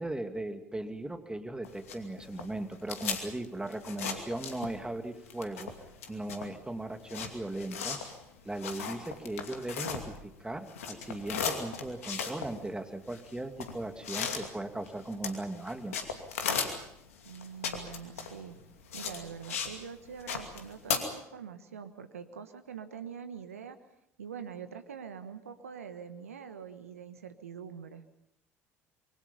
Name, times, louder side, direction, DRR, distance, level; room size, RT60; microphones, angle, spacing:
voice 1, 0.0-5.7 6.1-8.1 8.4-16.0, right 2 dB, 10° right, 6 dB, 2.6 m, -38 dB
sound 1, 1.6-5.0 5.2-10.4 10.6-19.8 20.1-21.0, left 6 dB, 80° left, 2.6 m, -36 dB
voice 2, 17.2-18.6 18.9-23.8 24.2-28.0, right 7 dB, 85° right, 10 dB, 1.3 m, -44 dB
26.0 x 23.5 x 5.6 m, 0.80 s
hypercardioid pair, 60°, 7 cm